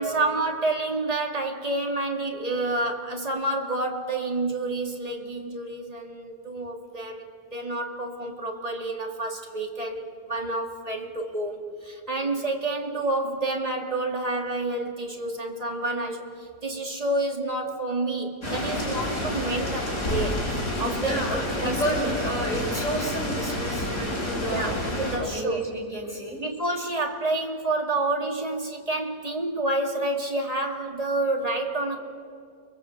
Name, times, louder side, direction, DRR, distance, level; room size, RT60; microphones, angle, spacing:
voice 1, 0.0-20.5 20.8-22.2 24.5-25.6 26.4-32.0, right 2 dB, 20° right, 1 dB, 2.8 m, -29 dB
sound 1, 18.4-25.2, left 1 dB, 85° left, 7.6 m, -29 dB
voice 2, 21.0-24.8 25.2-26.4, right 1 dB, 25° left, -1 dB, 6.8 m, -30 dB
30.0 x 22.5 x 8.2 m, 2.2 s
omnidirectional pair, 1.7 m